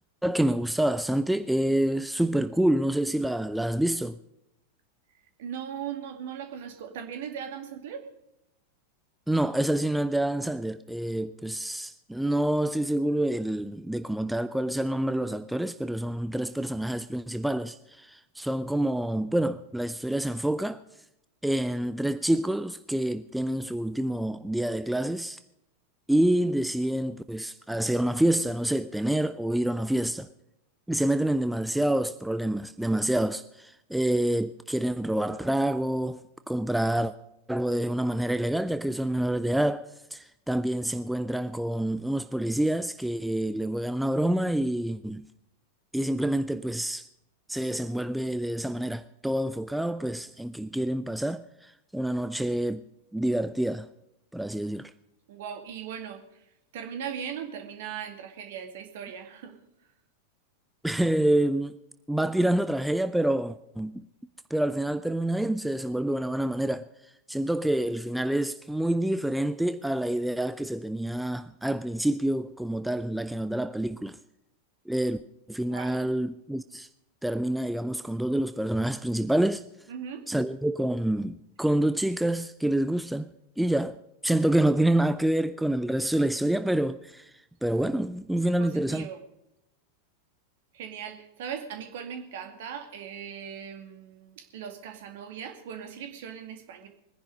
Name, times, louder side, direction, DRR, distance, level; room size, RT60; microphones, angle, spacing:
voice 1, 0.2-4.2 9.3-20.8 21.4-25.4 26.1-30.3 30.9-37.1 37.5-45.3 45.9-47.1 47.5-52.8 53.1-53.9 54.3-54.9 60.8-61.8 62.1-64.1 64.5-74.2 74.9-75.2 75.5-76.9 77.2-79.6 80.3-83.3 83.6-87.3 87.6-89.1, right 1 dB, 5° right, 0.5 m, -27 dB
voice 2, 5.4-8.1 55.3-56.4 56.7-59.6 75.6-76.1 79.9-80.3 88.6-89.2 90.7-96.9, right 8 dB, 55° right, 2.3 m, -39 dB
21.0 x 10.5 x 5.3 m
figure-of-eight pair, 90°, 0 cm